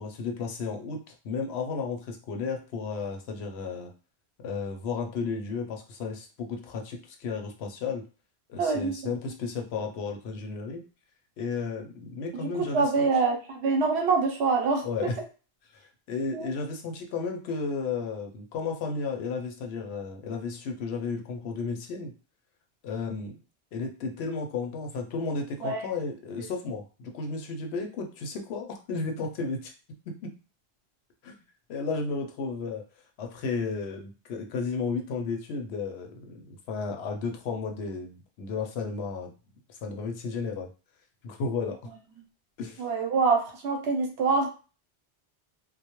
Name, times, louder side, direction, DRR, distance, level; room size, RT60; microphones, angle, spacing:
voice 1, 0.0-3.9 4.4-8.1 8.5-10.8 11.4-13.1 14.8-15.2 15.7-15.8 16.1-22.1 22.8-23.4 23.7-29.7 30.1-30.3 31.2-31.4 31.7-32.8 33.2-39.3 39.8-40.7 41.2-41.9 42.6-42.8, left 4 dB, 75° left, 3 dB, 0.8 m, -33 dB
voice 2, 8.6-9.1 12.4-15.1 16.3-16.5 25.6-25.9 42.8-44.5, right 4 dB, 80° right, 2 dB, 0.9 m, -25 dB
2.2 x 2.1 x 2.9 m, 0.34 s
omnidirectional pair, 1.1 m